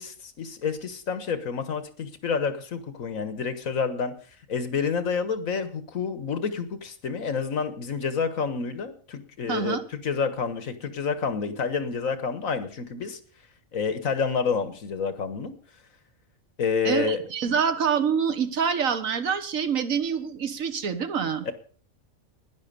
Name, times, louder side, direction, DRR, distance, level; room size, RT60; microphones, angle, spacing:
voice 1, 0.0-4.1 4.5-13.2 13.7-15.5 16.6-17.2 21.5-21.6, left 5 dB, 80° left, 12 dB, 1.8 m, -29 dB
voice 2, 9.5-9.8 16.8-21.5, right 7 dB, 75° right, 9 dB, 1.6 m, -26 dB
11.5 x 10.5 x 6.8 m, 0.43 s
omnidirectional pair, 1.4 m